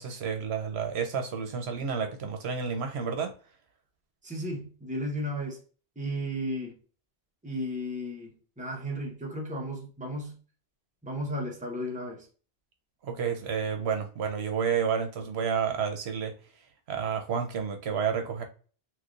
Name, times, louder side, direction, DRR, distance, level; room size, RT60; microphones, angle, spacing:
voice 1, 0.0-3.3 13.0-16.3 16.9-18.4, right 6 dB, 75° right, 0.9 m, -30 dB
voice 2, 4.2-5.6 6.0-6.8 7.4-10.4 11.0-12.3, equal, 10° right, 0.8 m, -34 dB
3.2 x 3.0 x 2.5 m
omnidirectional pair, 1.1 m